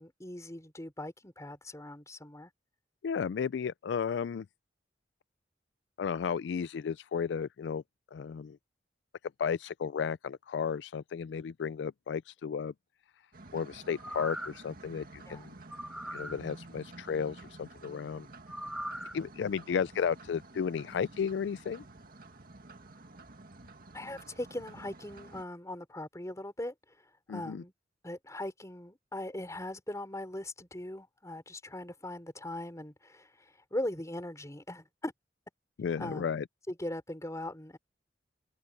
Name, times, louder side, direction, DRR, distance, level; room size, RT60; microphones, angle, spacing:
voice 1, 0.0-2.5 15.3-15.5 23.9-26.7 27.3-27.7 28.0-35.1 36.0-36.4 36.7-37.8, left 1 dB, 20° left, 4.7 m, -40 dB
voice 2, 3.0-4.5 6.0-7.8 8.1-8.6 9.4-12.7 13.5-15.5 16.1-18.3 19.1-21.8 27.3-27.6 35.8-36.4, left 6 dB, 70° left, 0.3 m, -33 dB
sound 1, 13.3-25.5, right 2 dB, 55° right, 2.0 m, -51 dB
sound 2, 13.9-14.7 15.7-16.4 18.5-19.2 19.6-19.7, equal, 5° right, 1.1 m, -40 dB
head